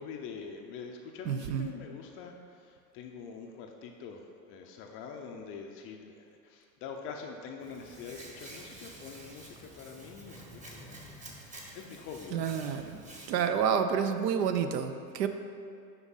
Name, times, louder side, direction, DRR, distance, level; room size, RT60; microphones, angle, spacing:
voice 1, 0.0-11.0 11.7-12.5, left 5 dB, 30° left, 2 dB, 0.3 m, -45 dB
voice 2, 1.3-1.7 12.3-13.0 13.3-15.3, right 7 dB, 80° right, 8 dB, 0.6 m, -29 dB
Hands, 7.6-13.4, right 1 dB, 15° right, 1.0 m, -49 dB
5.9 x 5.2 x 4.0 m, 2.4 s
hypercardioid pair, 100°, 49 cm